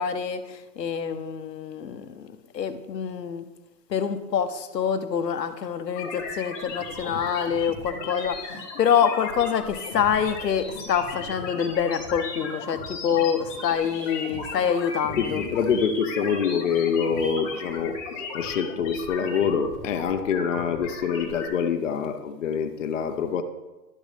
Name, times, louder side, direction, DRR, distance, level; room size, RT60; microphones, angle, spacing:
voice 1, 0.0-3.4 3.9-15.4, left 7 dB, 85° left, 9 dB, 1.0 m, -26 dB
sound 1, 5.9-21.5, left 3 dB, 15° left, 1.1 m, -36 dB
voice 2, 15.2-17.9 18.3-23.4, left 6 dB, 50° left, 7 dB, 0.8 m, -25 dB
11.5 x 6.4 x 3.4 m, 1.1 s
hypercardioid pair, 165°, 49 cm